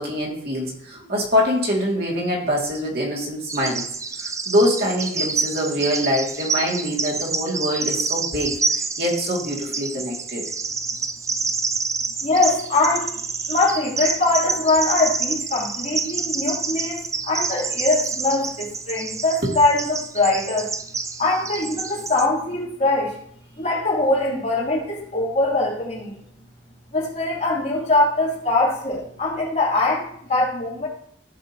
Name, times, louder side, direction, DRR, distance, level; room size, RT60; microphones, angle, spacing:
voice 1, 0.0-3.8 4.2-10.4 19.4-19.5, equal, 60° right, -2 dB, 2.2 m, -24 dB
Bird vocalization bird call bird song, 3.5-22.3, right 4 dB, 15° right, 0.4 m, -28 dB
voice 2, 12.2-20.7 21.2-23.2 23.5-26.2 26.9-30.9, left 2 dB, 40° left, -5 dB, 2.9 m, -22 dB
15.0 x 5.2 x 2.8 m, 0.68 s
head